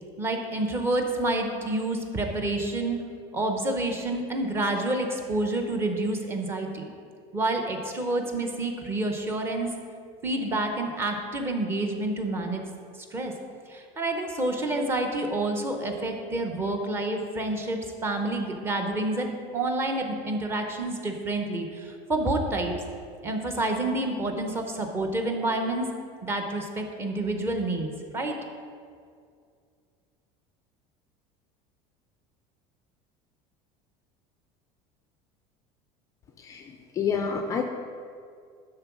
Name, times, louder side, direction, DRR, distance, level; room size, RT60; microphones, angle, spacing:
voice 1, 0.2-3.0 3.3-6.9 7.3-9.7 10.2-12.6 13.1-13.3 13.7-22.7 23.2-25.9 26.2-27.9 28.1-28.4, right 2 dB, 15° right, 3 dB, 0.7 m, -28 dB
voice 2, 36.4-37.6, left 6 dB, 20° left, 4 dB, 0.4 m, -29 dB
10.5 x 3.8 x 6.0 m, 2.2 s
cardioid pair, 180°, 15 cm